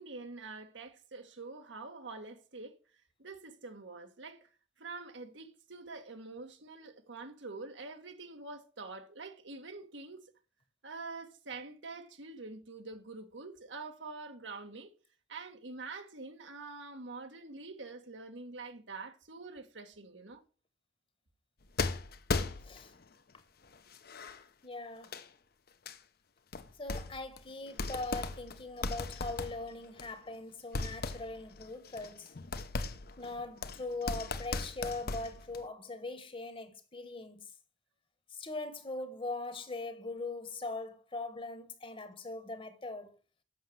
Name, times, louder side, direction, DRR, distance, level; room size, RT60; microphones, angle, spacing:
voice 1, 0.0-2.8 3.2-4.5 4.8-10.3 10.8-14.9 15.3-20.4, right 3 dB, 80° right, 1.6 m, -46 dB
sound 1, 21.8-23.0 23.7-24.4 25.0-25.2 25.9-26.0 26.5-27.4 27.7-30.3 30.7-35.7, left 3 dB, 55° left, 0.8 m, -37 dB
voice 2, 24.6-25.2 26.8-32.3 33.2-37.5 38.3-43.1, left 2 dB, 30° left, 1.2 m, -41 dB
7.8 x 6.4 x 7.7 m
head